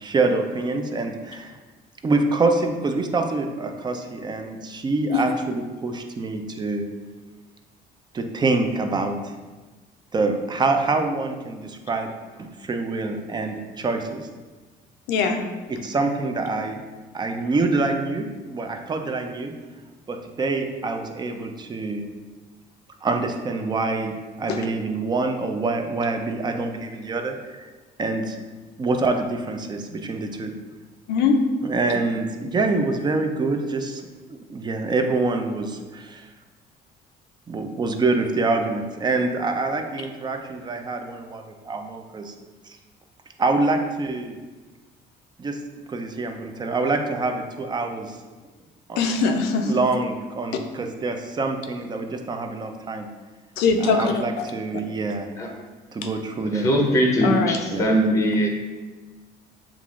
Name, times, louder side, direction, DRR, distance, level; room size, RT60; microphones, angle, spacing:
voice 1, 0.0-1.5 2.0-6.8 8.1-9.2 10.1-12.1 12.4-14.3 15.7-16.8 17.1-19.5 20.4-22.0 23.0-27.7 28.0-28.4 28.8-30.5 31.6-34.0 34.3-36.3 37.5-42.3 42.7-42.8 43.4-44.4 45.4-45.6 45.9-48.2 48.9-49.0 49.6-53.1 53.8-55.3 55.9-56.7 57.7-57.9, right 3 dB, 25° right, 5 dB, 0.4 m, -26 dB
voice 2, 15.1-15.4 24.5-24.6 31.1-31.4 49.0-49.7 53.6-54.5 57.2-57.6, left 4 dB, 90° left, 5 dB, 0.5 m, -21 dB
voice 3, 56.4-58.5, equal, 20° left, 1 dB, 0.7 m, -21 dB
6.8 x 2.4 x 2.4 m, 1.3 s
cardioid pair, 110°, 17 cm